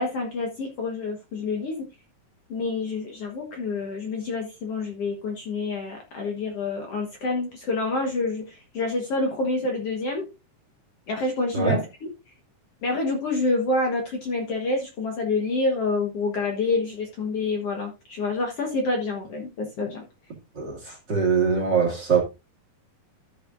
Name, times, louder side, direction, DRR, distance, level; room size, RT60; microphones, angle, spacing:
voice 1, 0.0-1.9 2.5-10.3 11.1-11.8 12.0-12.1 12.8-20.0, left 3 dB, 55° left, 2.0 m, -27 dB
voice 2, 20.5-22.2, right 6 dB, 35° right, 2.3 m, -23 dB
14.0 x 6.6 x 2.5 m
omnidirectional pair, 4.0 m